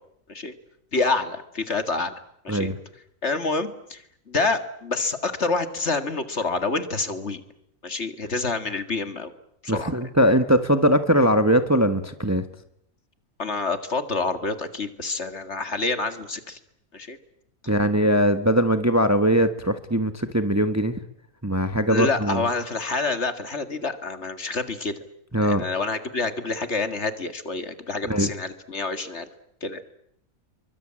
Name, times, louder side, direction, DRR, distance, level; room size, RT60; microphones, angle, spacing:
voice 1, 0.9-2.1 2.4-2.7 3.2-7.4 7.8-9.3 9.6-9.9 13.4-16.6 16.9-17.2 21.9-24.9 25.5-29.3 29.6-29.8, left 3 dB, 50° left, 9 dB, 2.3 m, -27 dB
voice 2, 9.7-12.4 17.7-21.0 21.4-22.4 25.3-25.6 28.1-28.3, equal, 10° right, 9 dB, 1.3 m, -21 dB
28.5 x 23.5 x 8.9 m, 0.74 s
omnidirectional pair, 1.5 m